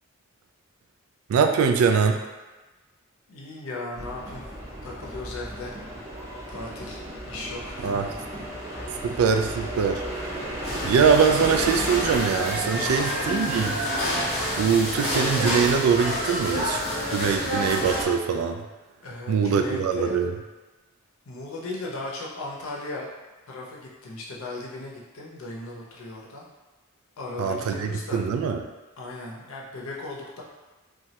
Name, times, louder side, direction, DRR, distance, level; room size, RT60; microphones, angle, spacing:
voice 1, 1.3-2.2 7.8-8.1 9.0-10.0 10.8-13.7 14.6-16.8 17.1-18.6 19.3-20.3 27.4-28.6, right 6 dB, 90° right, 7 dB, 0.3 m, -22 dB
voice 2, 3.3-4.5 4.8-5.8 6.5-7.0 7.2-8.1 8.7-9.0 12.8-13.3 19.0-20.2 21.3-23.1 23.5-26.5 27.2-28.2 29.0-30.4, left 2 dB, 75° left, -2 dB, 0.6 m, -37 dB
sound 1, 3.9-12.2, equal, 15° right, 0.6 m, -34 dB
sound 2, 10.6-18.0, equal, 30° left, 0.6 m, -28 dB
3.0 x 2.3 x 2.8 m, 1.2 s
head